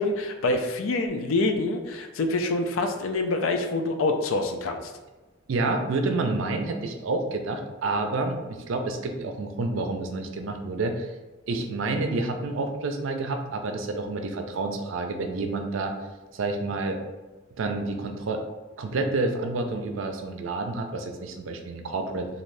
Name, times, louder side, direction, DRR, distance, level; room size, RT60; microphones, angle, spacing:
voice 1, 0.0-4.9, left 2 dB, 85° left, 5 dB, 0.4 m, -26 dB
voice 2, 5.5-11.1 11.5-15.9 16.3-17.0 17.6-18.4 18.8-22.3, right 3 dB, 75° right, 5 dB, 0.4 m, -29 dB
2.6 x 2.6 x 3.2 m, 1.2 s
head